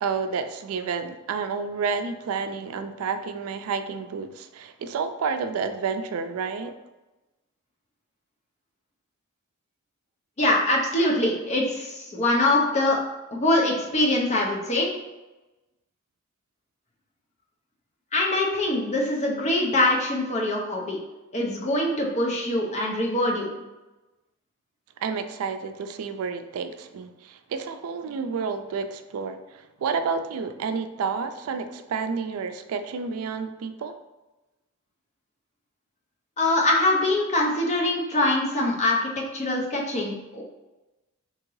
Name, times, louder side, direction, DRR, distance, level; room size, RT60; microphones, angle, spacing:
voice 1, 0.0-6.7 25.0-33.9, right 5 dB, 85° right, 8 dB, 0.3 m, -30 dB
voice 2, 10.4-13.0 13.3-14.9 18.1-21.0 21.3-23.5 36.4-40.4, left 1 dB, 30° left, -1 dB, 0.6 m, -23 dB
3.6 x 2.9 x 3.1 m, 1.0 s
head